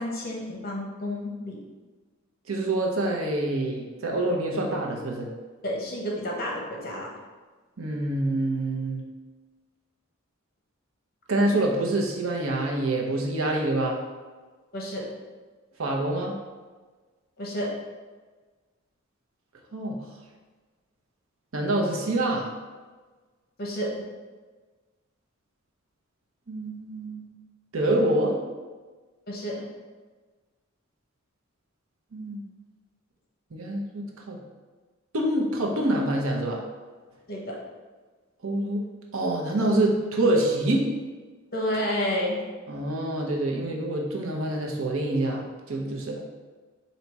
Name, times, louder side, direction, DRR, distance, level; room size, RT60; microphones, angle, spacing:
voice 1, 0.0-1.6 5.6-7.1 14.7-15.0 17.4-17.7 23.6-23.9 29.3-29.6 37.3-37.6 41.5-42.4, equal, 50° left, -2 dB, 1.0 m, -30 dB
voice 2, 2.5-5.3 7.8-9.0 11.3-14.0 15.8-16.3 19.7-20.0 21.5-22.5 26.5-27.3 27.7-28.4 32.1-32.4 33.5-34.4 35.1-36.6 38.4-38.8 39.1-40.9 42.7-46.2, right 1 dB, 85° right, 0 dB, 0.8 m, -26 dB
4.1 x 2.8 x 4.6 m, 1.3 s
head